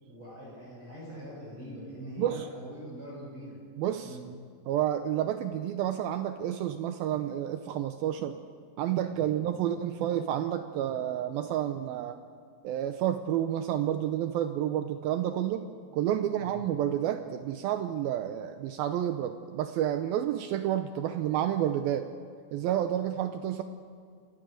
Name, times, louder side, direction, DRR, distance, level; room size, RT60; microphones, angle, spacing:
voice 1, 0.0-3.6 4.0-4.3 9.2-9.4 16.4-16.6, equal, 30° right, -5 dB, 7.4 m, -43 dB
voice 2, 3.8-4.2 4.7-8.4 8.8-12.2 12.6-15.7 15.9-22.1 22.5-23.6, right 11 dB, 85° right, 8 dB, 2.2 m, -30 dB
28.0 x 15.5 x 6.5 m, 2.2 s
omnidirectional pair, 5.0 m